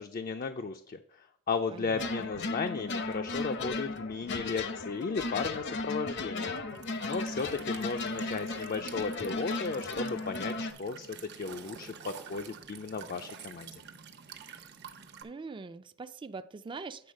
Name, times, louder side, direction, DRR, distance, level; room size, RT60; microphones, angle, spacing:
voice 1, 0.0-6.6 7.0-13.8, left 4 dB, 45° left, 7 dB, 0.4 m, -35 dB
voice 2, 1.7-2.3 15.2-17.1, right 4 dB, 25° right, 12 dB, 0.3 m, -43 dB
sound 1, 1.9-10.7, left 3 dB, 60° left, 0.8 m, -36 dB
Walk footsteps / Chirp tweet / Stream, 6.7-15.2, right 7 dB, 60° right, 0.8 m, -48 dB
8.7 x 4.0 x 6.3 m, 0.64 s
head